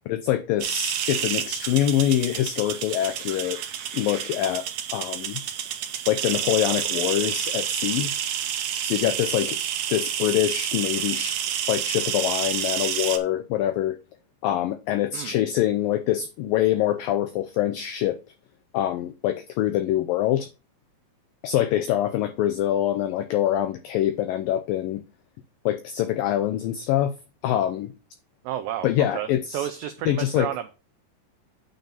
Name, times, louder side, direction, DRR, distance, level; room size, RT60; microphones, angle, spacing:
voice 1, 0.1-3.6 3.9-5.4 6.1-8.1 8.8-9.6 9.9-11.4 11.7-14.0 14.4-18.2 18.7-20.5 21.4-25.0 25.7-27.1 27.4-27.9 28.8-29.7 30.1-30.5, left 12 dB, 85° left, 2.0 m, -25 dB
sound 1, 0.6-13.2, right 10 dB, 70° right, 1.9 m, -29 dB
voice 2, 28.4-30.7, right 11 dB, 90° right, 1.9 m, -31 dB
9.1 x 3.8 x 7.0 m
omnidirectional pair, 4.8 m